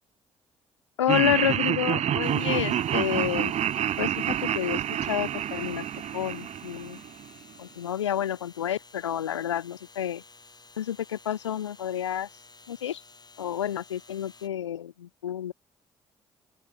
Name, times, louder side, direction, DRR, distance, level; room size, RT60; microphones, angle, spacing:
voice 1, 1.0-3.5 4.0-5.9 6.1-7.0 7.6-10.2 10.8-12.3 12.7-13.0 13.4-15.5, left 10 dB, 90° left, 1.6 m, -29 dB
Laughter, 1.1-7.3, right 10 dB, 50° right, 0.6 m, -28 dB
sound 1, 2.2-14.5, left 3 dB, 30° left, 6.8 m, -53 dB
open air
hypercardioid pair, 45°, 15 cm